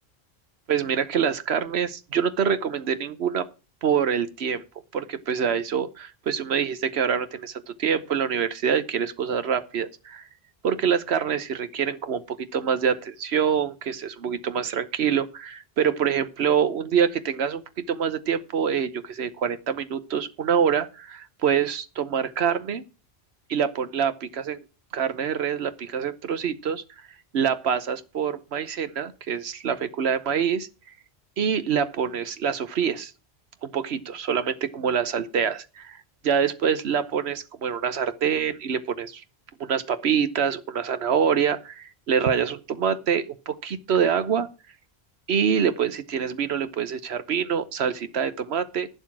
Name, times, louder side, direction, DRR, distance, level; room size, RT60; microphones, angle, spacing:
voice 1, 0.7-3.5 3.8-4.6 4.9-10.3 10.6-17.6 17.9-22.8 23.5-24.6 24.9-26.8 27.3-30.7 31.4-33.1 33.6-36.0 36.2-39.2 39.6-44.5 45.3-48.9, right 7 dB, 80° right, 1.2 m, -25 dB
11.5 x 6.9 x 6.0 m
omnidirectional pair, 1.1 m